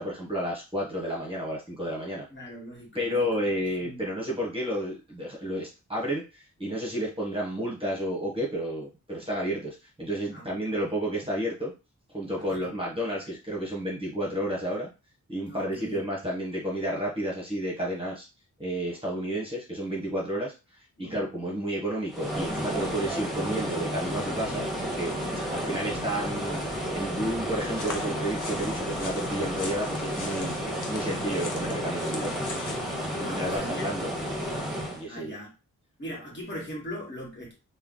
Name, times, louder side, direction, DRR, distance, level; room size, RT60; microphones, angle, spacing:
voice 1, 0.0-2.2 2.9-11.7 12.1-14.9 15.3-18.2 18.6-20.5 21.0-25.1 25.5-26.6 26.9-30.5 30.9-32.4 33.2-34.1 34.9-35.3, equal, 15° right, -4 dB, 1.1 m, -31 dB
voice 2, 2.3-3.4 3.8-4.0 10.3-10.8 12.5-12.7 15.5-16.0 21.0-21.2 25.3-25.7 33.1-33.9 35.1-35.5 36.0-37.5, equal, 35° left, -3 dB, 1.5 m, -40 dB
sound 1, 22.1-35.0, equal, ahead, 1.4 m, -32 dB
sound 2, 27.6-33.6, left 4 dB, 70° left, 0.8 m, -40 dB
3.3 x 2.3 x 3.7 m, 0.29 s
wide cardioid pair, 125°, 32 cm